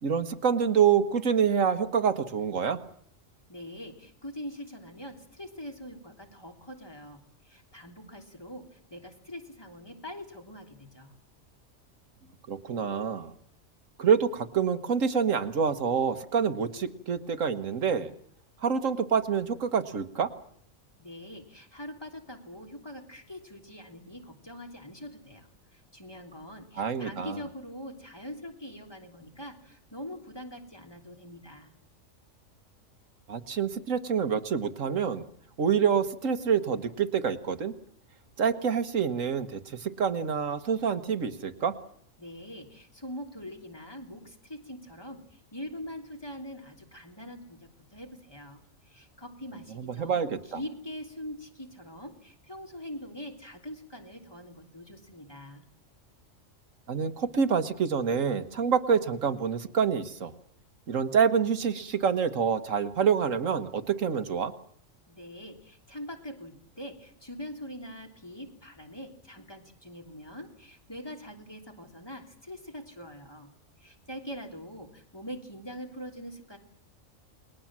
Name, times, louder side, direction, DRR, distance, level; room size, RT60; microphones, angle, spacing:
voice 1, 0.0-2.8 12.5-13.3 14.0-18.1 18.6-20.3 26.8-27.4 33.3-35.2 35.6-37.7 38.4-41.7 49.8-50.6 56.9-60.3 60.9-64.5, right 7 dB, 75° right, 9 dB, 1.7 m, -27 dB
voice 2, 3.5-11.1 21.0-31.7 42.2-55.6 65.1-73.5 73.8-76.6, equal, 20° left, 3 dB, 3.2 m, -43 dB
29.5 x 20.5 x 7.4 m, 0.64 s
omnidirectional pair, 1.3 m